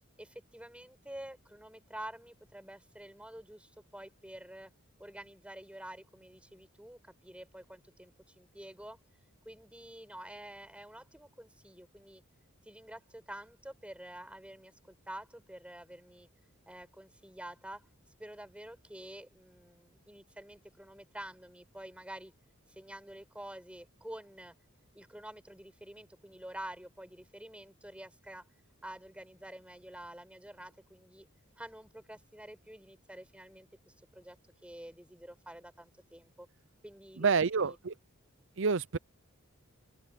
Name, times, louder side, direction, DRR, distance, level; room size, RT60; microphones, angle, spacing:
voice 1, 0.2-4.7 5.0-9.0 9.4-12.2 12.6-16.3 16.7-17.8 18.2-22.3 22.7-24.5 24.9-28.4 28.8-31.3 31.6-34.4 34.6-36.5 36.8-37.8, right 1 dB, 5° right, 6.4 m, -48 dB
voice 2, 37.2-37.9 38.6-39.0, right 5 dB, 60° right, 0.7 m, -28 dB
open air
head